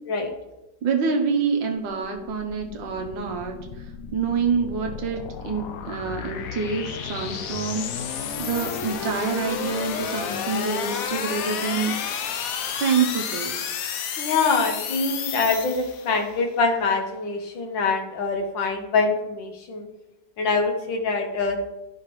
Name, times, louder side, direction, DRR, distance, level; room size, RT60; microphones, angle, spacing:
voice 1, 0.8-3.6 4.1-7.9 8.4-12.0 12.8-13.6, right 5 dB, 80° right, 3 dB, 1.8 m, -26 dB
sound 1, 1.8-16.3, left 7 dB, 65° left, 0.9 m, -32 dB
voice 2, 14.2-19.9 20.4-21.6, left 4 dB, 80° left, 4 dB, 1.9 m, -24 dB
11.5 x 5.7 x 3.2 m, 0.96 s
omnidirectional pair, 2.0 m